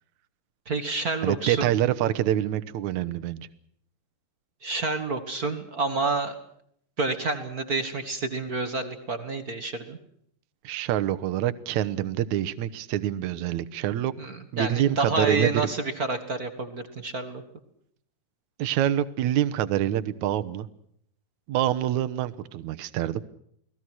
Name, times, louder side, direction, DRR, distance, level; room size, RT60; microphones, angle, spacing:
voice 1, 0.7-1.7 4.6-6.3 7.0-10.0 14.2-17.4, right 3 dB, 35° right, 8 dB, 1.9 m, -29 dB
voice 2, 1.2-3.5 10.6-14.1 14.5-15.5 18.6-20.7 21.5-23.2, right 12 dB, 70° right, 11 dB, 2.3 m, -26 dB
29.5 x 20.0 x 6.3 m, 0.68 s
omnidirectional pair, 3.7 m